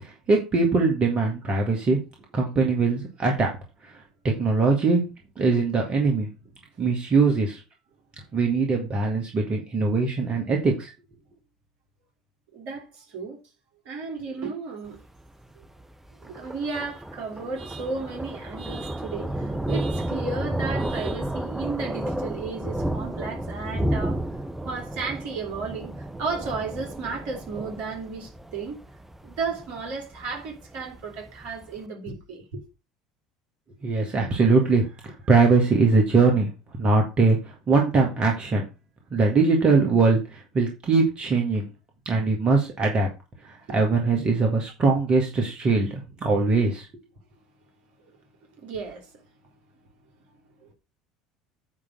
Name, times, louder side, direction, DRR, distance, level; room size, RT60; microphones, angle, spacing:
voice 1, 0.3-2.0 2.3-3.5 3.8-3.9 4.2-5.0 5.4-6.3 6.8-7.6 8.3-10.9 33.8-36.5 36.8-38.6 39.1-41.6 42.1-43.1 43.7-46.0 46.2-46.9, right 4 dB, 35° right, 2.2 m, -21 dB
voice 2, 12.5-13.4 13.8-15.0 15.5-15.6 16.2-24.2 24.6-28.8 29.2-32.6 43.9-44.1 48.0-48.1 48.6-49.1 50.6-50.7, right 4 dB, 55° right, 3.1 m, -34 dB
Thunder, 14.9-31.8, right 1 dB, 10° right, 1.0 m, -32 dB
9.6 x 3.7 x 6.3 m
figure-of-eight pair, 65°, 3 cm